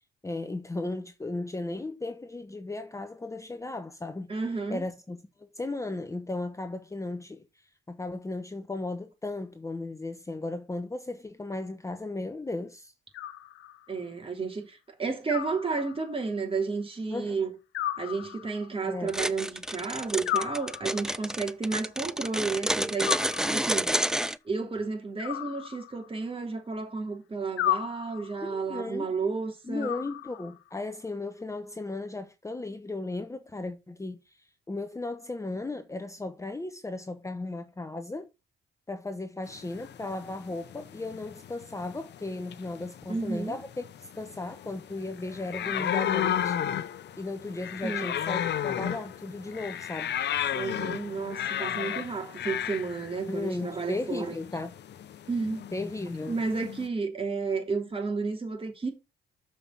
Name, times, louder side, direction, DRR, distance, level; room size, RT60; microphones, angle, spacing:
voice 1, 0.2-4.3 4.7-7.5 7.9-12.9 17.1-17.4 18.8-19.1 28.4-29.1 29.6-38.3 38.9-46.6 47.2-50.2 53.3-54.7 55.7-56.4, left 2 dB, 15° left, 1.0 m, -36 dB
voice 2, 4.3-4.8 13.9-17.5 18.0-23.2 23.4-23.9 24.4-29.9 43.1-43.6 47.8-48.2 50.5-54.4 55.3-55.7 56.3-58.9, right 4 dB, 30° right, 3.2 m, -32 dB
Animal, 13.1-14.0 15.3-16.3 17.7-18.8 20.2-21.3 23.0-23.9 25.2-26.3 27.6-28.5 29.8-30.7, left 13 dB, 85° left, 1.1 m, -34 dB
sound 1, 19.1-24.4, right 1 dB, 5° right, 0.5 m, -29 dB
sound 2, 39.4-56.9, left 10 dB, 60° left, 0.9 m, -34 dB
6.9 x 5.6 x 5.9 m
cardioid pair, 90°, 20 cm